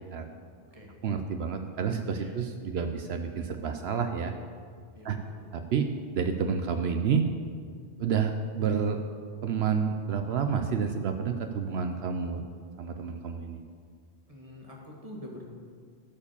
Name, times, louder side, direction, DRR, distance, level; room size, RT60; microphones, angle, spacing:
voice 1, 1.0-4.3 5.0-5.2 5.5-5.9 6.1-7.2 8.0-9.0 9.4-12.4 12.8-13.6, right 6 dB, 70° right, 6 dB, 0.8 m, -29 dB
voice 2, 4.9-5.5 14.3-15.4, left 1 dB, 30° right, -2 dB, 1.9 m, -46 dB
13.0 x 4.9 x 6.9 m, 2.1 s
omnidirectional pair, 1.2 m